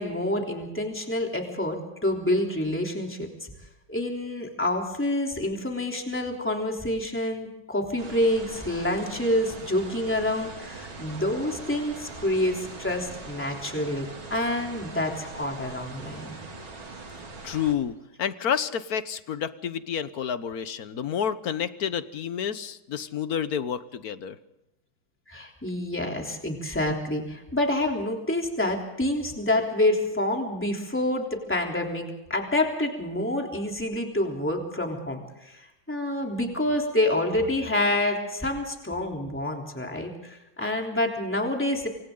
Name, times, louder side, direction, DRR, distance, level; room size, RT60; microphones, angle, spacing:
voice 1, 0.0-3.5 3.9-16.3 25.3-41.9, left 1 dB, 5° left, 1 dB, 3.4 m, -27 dB
sound 1, 8.0-17.8, right 3 dB, 85° right, 3.7 m, -41 dB
voice 2, 17.4-24.4, left 8 dB, 55° left, 13 dB, 1.3 m, -29 dB
27.0 x 26.0 x 3.9 m, 0.90 s
omnidirectional pair, 2.2 m